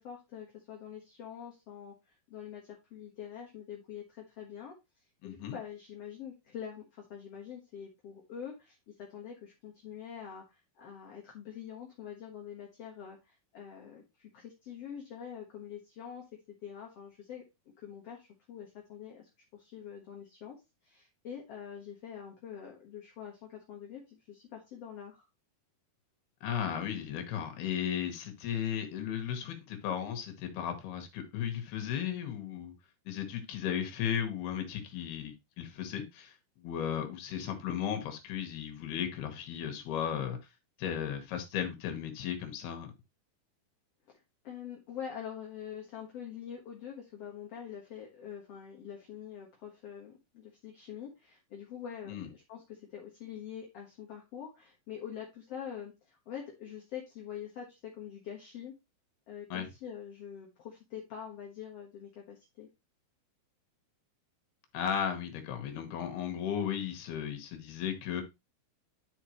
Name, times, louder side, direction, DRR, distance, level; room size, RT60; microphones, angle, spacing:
voice 1, 0.0-4.8 5.2-16.2 16.6-17.4 17.8-20.6 20.8-25.3 44.4-58.7 59.3-62.7, left 8 dB, 55° left, 1.8 m, -45 dB
voice 2, 5.2-5.6 26.4-32.7 33.1-40.4 40.8-42.9 52.1-52.3 59.5-59.7 64.7-68.2, left 9 dB, 80° left, 3.3 m, -35 dB
11.0 x 4.9 x 3.0 m
omnidirectional pair, 4.5 m